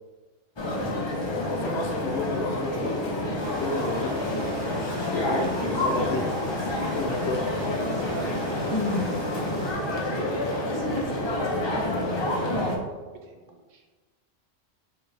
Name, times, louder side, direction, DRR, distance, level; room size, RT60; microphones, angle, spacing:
sound 1, 0.6-12.8, left 1 dB, 30° left, 0.5 m, -28 dB
voice 1, 1.5-3.0 3.5-4.2 5.1-6.3 6.7-7.5, left 3 dB, 65° left, 2 dB, 0.8 m, -32 dB
sound 2, 3.4-9.7, equal, 20° right, 1.6 m, -40 dB
voice 2, 5.3-6.3 8.1-9.4 9.9-13.8, right 2 dB, 75° right, 3 dB, 1.0 m, -40 dB
4.5 x 3.3 x 3.2 m, 1.4 s
omnidirectional pair, 1.3 m